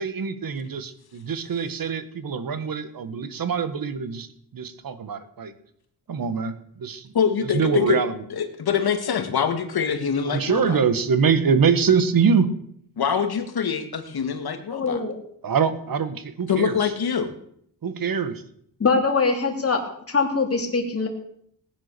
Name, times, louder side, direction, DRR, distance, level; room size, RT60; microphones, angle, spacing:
voice 1, 0.0-4.3 4.5-5.5 6.1-7.1 7.4-8.2 10.3-12.5 15.4-16.9 17.8-18.4, right 6 dB, 55° right, 11 dB, 1.6 m, -24 dB
voice 2, 7.1-8.0 8.3-10.8 13.0-15.0 16.5-17.3, left 7 dB, 60° left, 7 dB, 2.1 m, -24 dB
voice 3, 14.7-15.1 18.8-19.8 20.1-21.1, left 4 dB, 35° left, 2 dB, 3.3 m, -22 dB
18.5 x 9.9 x 6.9 m, 0.68 s
wide cardioid pair, 140°, 42 cm